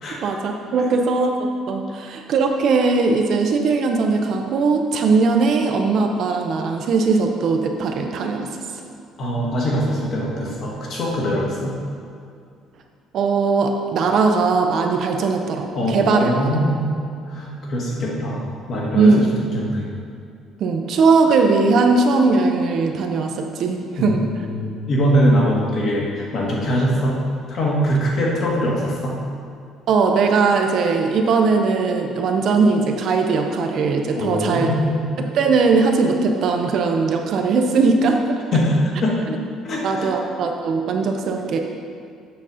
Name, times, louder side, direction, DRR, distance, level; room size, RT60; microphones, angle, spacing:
voice 1, 0.2-8.6 13.1-16.3 18.9-19.2 20.6-24.2 29.9-34.7 35.2-38.4 39.3-39.4 39.8-41.6, right 4 dB, 45° right, 3 dB, 0.6 m, -19 dB
voice 2, 9.2-11.8 15.7-16.9 17.3-19.2 19.5-19.9 24.0-27.2 27.5-29.2 34.1-35.1 38.5-39.1 39.6-40.1, equal, 40° left, -3 dB, 1.5 m, -22 dB
7.7 x 4.1 x 6.2 m, 2.4 s
cardioid pair, 175°, 0 cm